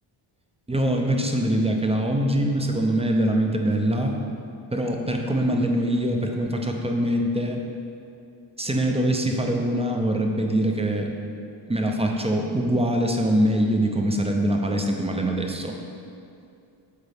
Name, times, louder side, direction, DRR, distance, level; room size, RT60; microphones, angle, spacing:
voice 1, 0.7-4.1 4.7-7.6 8.6-11.1 11.7-15.7, right 1 dB, 15° right, 2 dB, 0.5 m, -23 dB
8.1 x 3.6 x 3.5 m, 2.5 s
cardioid pair, 80°, 50 cm